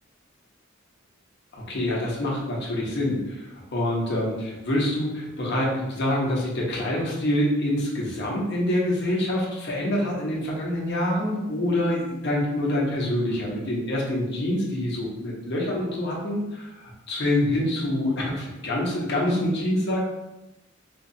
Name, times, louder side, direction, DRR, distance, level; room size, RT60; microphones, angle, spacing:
voice 1, 1.5-3.5 3.7-20.0, left 1 dB, 55° left, -3 dB, 0.9 m, -26 dB
4.4 x 2.3 x 2.6 m, 0.99 s
head